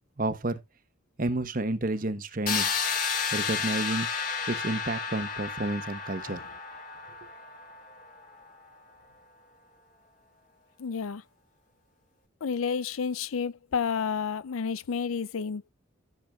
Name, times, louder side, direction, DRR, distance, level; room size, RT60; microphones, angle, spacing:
voice 1, 0.2-0.6 1.2-2.7 3.3-4.1 4.5-6.4, right 2 dB, 40° right, 1.0 m, -30 dB
sound 1, 2.5-8.3, left 5 dB, 40° left, 2.2 m, -32 dB
voice 2, 10.8-11.2 12.4-15.7, left 6 dB, 85° left, 0.5 m, -30 dB
15.5 x 7.0 x 2.3 m
head